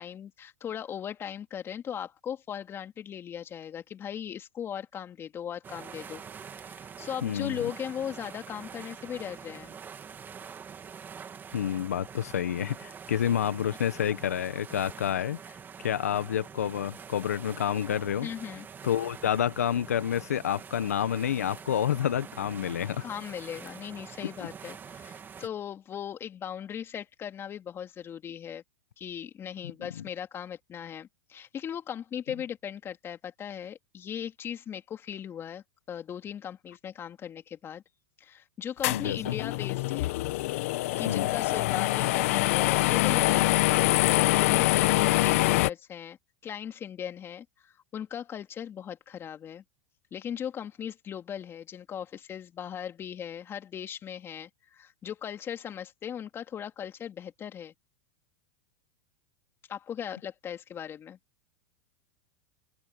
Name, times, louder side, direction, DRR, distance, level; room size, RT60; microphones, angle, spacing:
voice 1, 0.0-6.2 6.5-9.8 18.2-18.7 23.0-28.6 29.0-37.8 38.2-40.1 40.6-46.2 46.4-49.6 50.1-57.7 59.7-61.2, left 9 dB, 30° left, 2.8 m, -38 dB
sound 1, 5.6-25.5, right 7 dB, 25° right, 2.6 m, -45 dB
voice 2, 7.2-7.6 11.5-18.3 18.8-23.0 30.0-30.1 38.9-39.3 41.1-41.3, left 9 dB, 90° left, 1.1 m, -29 dB
sound 2, 38.8-45.7, left 19 dB, 65° left, 1.7 m, -25 dB
hypercardioid pair, 105°, 8 cm